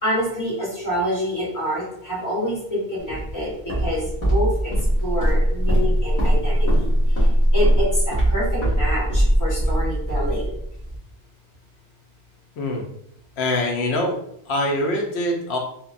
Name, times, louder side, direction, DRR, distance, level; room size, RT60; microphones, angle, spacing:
voice 1, 0.0-4.7 5.0-10.5, equal, 20° left, -8 dB, 1.2 m, -27 dB
Walk footsteps, 3.1-11.0, equal, 50° left, 1.3 m, -20 dB
voice 2, 13.4-14.2 14.5-15.6, left 1 dB, 90° left, 1 dB, 0.9 m, -23 dB
2.8 x 2.2 x 2.5 m, 0.72 s
omnidirectional pair, 1.1 m